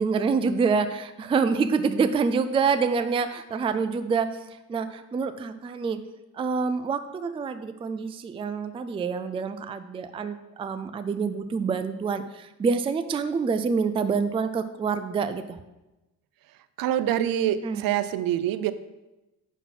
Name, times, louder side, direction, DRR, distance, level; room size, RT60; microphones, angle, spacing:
voice 1, 0.0-4.3 4.7-6.0 6.3-15.6 17.6-17.8, right 5 dB, 15° right, 10 dB, 0.3 m, -26 dB
voice 2, 16.8-18.7, right 11 dB, 65° right, 13 dB, 0.6 m, -25 dB
10.0 x 4.0 x 5.9 m, 1.0 s
cardioid pair, 130°, 36 cm